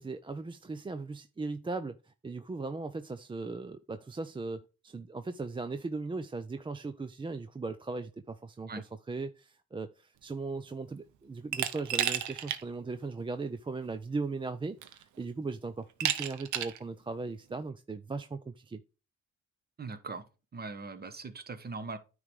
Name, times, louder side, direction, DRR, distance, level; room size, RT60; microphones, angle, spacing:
voice 1, 0.0-18.8, right 3 dB, 15° right, 0.5 m, -38 dB
Glass, 11.5-12.6 13.0-13.1 14.2-14.3 14.8-15.2 16.0-16.8, right 10 dB, 75° right, 0.9 m, -32 dB
voice 2, 19.8-20.2 20.5-22.0, right 4 dB, 30° right, 1.1 m, -40 dB
9.5 x 3.2 x 5.2 m
cardioid pair, 90°, 30 cm